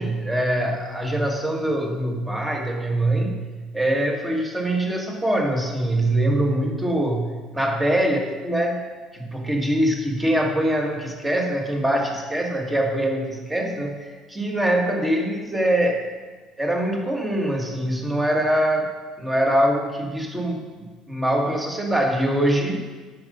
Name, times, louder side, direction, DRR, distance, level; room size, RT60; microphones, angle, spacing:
voice 1, 0.0-3.4 3.7-8.8 9.1-16.1 16.6-18.9 19.2-22.8, right 1 dB, 10° right, 1 dB, 1.7 m, -23 dB
8.8 x 6.6 x 5.4 m, 1.4 s
supercardioid pair, 100°, 0 cm